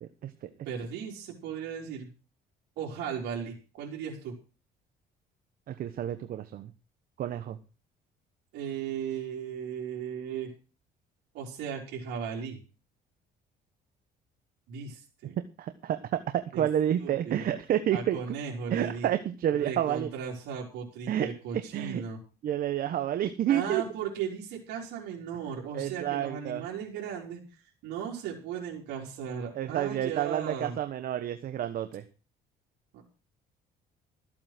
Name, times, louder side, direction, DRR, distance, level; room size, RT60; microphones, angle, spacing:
voice 1, 0.0-0.5 5.7-6.7 7.2-7.6 15.6-18.2 18.7-20.1 21.1-21.3 21.7-22.0 22.4-23.8 25.7-26.6 29.5-32.0, right 11 dB, 60° right, 10 dB, 1.2 m, -29 dB
voice 2, 0.7-2.1 2.8-4.3 8.5-10.5 11.3-12.6 14.7-15.4 16.5-16.7 17.0-17.5 17.9-19.1 19.5-22.2 23.5-27.6 27.8-30.8 32.9-33.0, right 7 dB, 85° right, -3 dB, 4.3 m, -36 dB
14.0 x 8.7 x 6.1 m, 0.34 s
cardioid pair, 110°, 17 cm